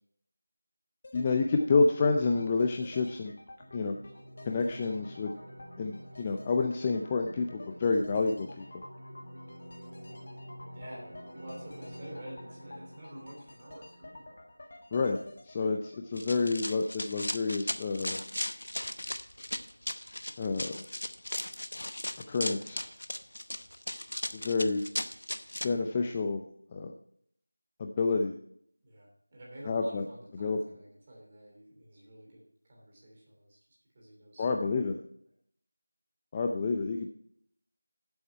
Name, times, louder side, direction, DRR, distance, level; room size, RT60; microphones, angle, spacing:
sound 1, 1.0-17.0 17.3-17.4, left 2 dB, 35° left, 1.6 m, -52 dB
voice 1, 1.1-3.3 3.7-4.0 4.5-5.3 5.8-8.8 14.9-15.2 15.4-18.2 20.4-20.8 22.3-22.9 24.3-24.8 25.6-26.4 26.7-26.9 27.8-28.3 29.6-30.0 30.4-30.6 34.4-35.0 36.3-37.1, left 4 dB, 15° left, 4 dB, 0.4 m, -29 dB
sound 2, 3.6-14.6, equal, 50° right, 4.4 m, -48 dB
voice 2, 10.7-14.4 28.8-32.4 32.7-33.6 33.9-34.9, right 1 dB, 20° right, -3 dB, 2.9 m, -49 dB
Run, 16.2-25.7, left 1 dB, 75° left, 0.9 m, -37 dB
11.5 x 7.9 x 4.5 m, 0.67 s
figure-of-eight pair, 175°, 0 cm